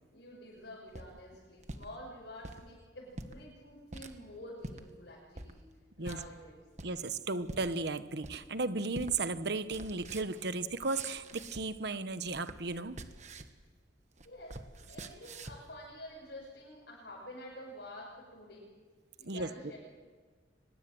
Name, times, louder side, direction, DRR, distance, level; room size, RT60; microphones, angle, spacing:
voice 1, 0.1-5.6 6.0-6.6 14.2-14.6 14.9-18.7 19.2-19.8, left 1 dB, 65° left, 6.2 m, -49 dB
sound 1, 0.7-1.9 2.3-2.6 3.1-3.4 3.9-4.1 4.6-4.8 5.4-5.5 6.0-6.2 6.8-7.1 7.5-7.7 8.2-8.6 8.9-9.1 9.4-11.8 12.1-13.6 13.9-15.7, right 2 dB, 40° right, 1.4 m, -46 dB
voice 2, 6.8-13.0 19.2-19.5, right 3 dB, 65° right, 1.2 m, -35 dB
24.5 x 21.0 x 7.9 m
head